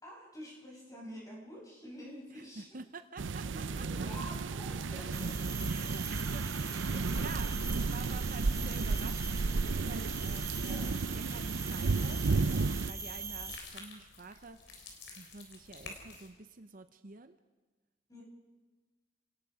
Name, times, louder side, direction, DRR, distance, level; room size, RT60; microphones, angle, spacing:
voice 1, 0.0-2.7 3.4-5.4 6.9-7.3 10.6-10.9 18.1-18.2, equal, 20° left, -2 dB, 6.2 m, -48 dB
voice 2, 2.3-3.9 5.7-14.6 15.2-17.4, right 3 dB, 45° right, 10 dB, 0.8 m, -49 dB
sound 1, 3.2-12.9, right 4 dB, 90° right, 0.6 m, -33 dB
sound 2, 5.1-13.6, right 4 dB, 15° right, 1.5 m, -42 dB
sound 3, 9.2-16.3, left 4 dB, 65° left, 3.7 m, -52 dB
30.0 x 18.0 x 5.0 m, 1.3 s
head